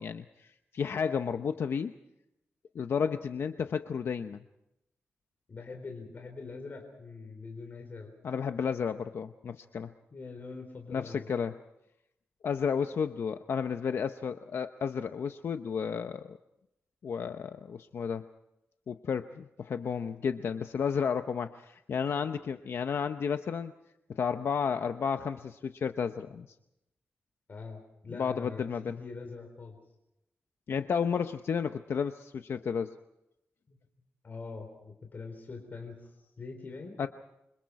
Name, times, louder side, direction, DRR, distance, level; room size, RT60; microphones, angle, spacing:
voice 1, 0.0-1.9 2.7-4.4 8.2-9.9 10.9-11.6 12.4-16.4 17.0-18.3 18.9-23.7 24.1-26.5 28.1-29.0 30.7-32.9 37.0-37.1, left 6 dB, 65° left, 8 dB, 0.8 m, -32 dB
voice 2, 5.5-8.1 10.1-11.3 27.5-29.8 33.7-33.8 34.2-36.9, left 4 dB, 45° left, 3 dB, 4.1 m, -43 dB
28.0 x 25.5 x 4.8 m, 0.86 s
wide cardioid pair, 140°, 4 cm